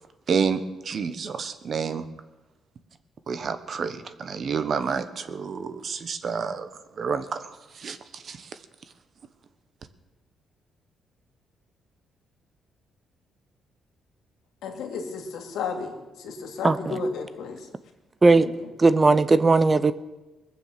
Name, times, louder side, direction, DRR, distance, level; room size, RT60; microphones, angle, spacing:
voice 1, 0.3-2.1 3.3-8.6, right 6 dB, 50° right, 10 dB, 1.2 m, -29 dB
voice 2, 14.6-15.9 16.2-17.6 18.4-18.5, left 4 dB, 80° left, 3 dB, 2.3 m, -32 dB
voice 3, 16.6-17.0 18.2-18.5 18.8-19.9, right 3 dB, 25° right, 15 dB, 0.7 m, -18 dB
20.5 x 7.3 x 7.7 m, 1.1 s
cardioid pair, 90°, 0 cm